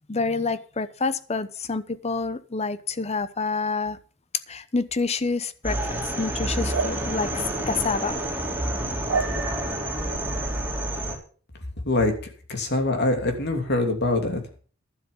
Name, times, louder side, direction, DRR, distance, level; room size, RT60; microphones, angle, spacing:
voice 1, 0.1-4.0 4.5-5.8 6.0-8.2, left 4 dB, 30° left, 14 dB, 0.8 m, -28 dB
sound 1, 5.6-11.2, right 1 dB, 10° right, 3.4 m, -28 dB
sound 2, 6.7-6.9 9.1-9.3 10.1-10.2, right 5 dB, 85° right, 0.8 m, -26 dB
voice 2, 12.5-14.4, left 2 dB, 55° left, 4 dB, 2.9 m, -23 dB
12.0 x 7.6 x 6.9 m, 0.41 s
head